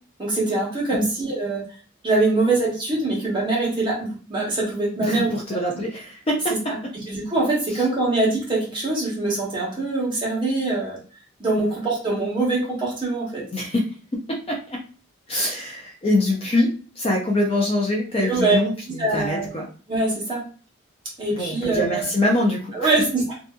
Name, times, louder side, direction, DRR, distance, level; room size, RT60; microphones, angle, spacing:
voice 1, 0.2-1.6 2.0-5.3 7.1-11.0 11.4-13.4 18.2-18.6 19.0-19.5 19.9-20.5 21.2-22.1 22.7-23.3, right 2 dB, 20° right, -6 dB, 1.0 m, -23 dB
voice 2, 5.0-6.5 7.7-7.8 13.5-13.9 14.1-14.8 15.3-19.7 21.3-23.0, left 1 dB, 25° left, -2 dB, 0.4 m, -24 dB
2.6 x 2.5 x 2.3 m, 0.39 s
head